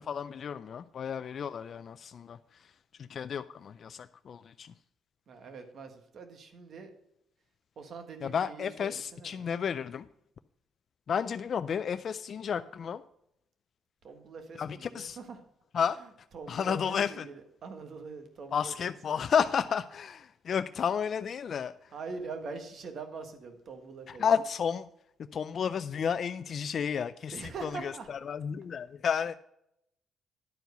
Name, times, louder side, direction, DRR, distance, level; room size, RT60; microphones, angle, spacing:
voice 1, 0.0-2.4 3.0-4.7 8.2-10.1 11.1-13.0 14.6-15.2 15.7-16.0 16.5-17.3 18.5-21.7 24.1-24.9 25.3-29.3, left 7 dB, 55° left, 11 dB, 0.3 m, -32 dB
voice 2, 5.3-6.9 7.8-9.5 14.0-15.4 16.3-18.9 21.9-24.2 27.3-28.1, right 4 dB, 60° right, 6 dB, 1.5 m, -43 dB
10.5 x 4.6 x 6.7 m, 0.78 s
cardioid pair, 90°, 0 cm